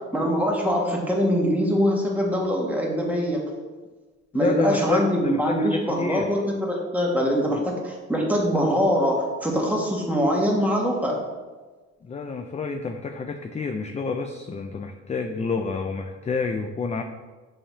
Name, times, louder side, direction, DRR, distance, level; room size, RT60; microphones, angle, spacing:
voice 1, 0.1-3.4 4.3-11.2, equal, 5° right, -2 dB, 1.6 m, -23 dB
voice 2, 4.3-6.3 7.5-7.6 12.0-17.0, left 4 dB, 25° left, 6 dB, 0.4 m, -29 dB
7.0 x 5.5 x 2.7 m, 1.3 s
cardioid pair, 90°, 30 cm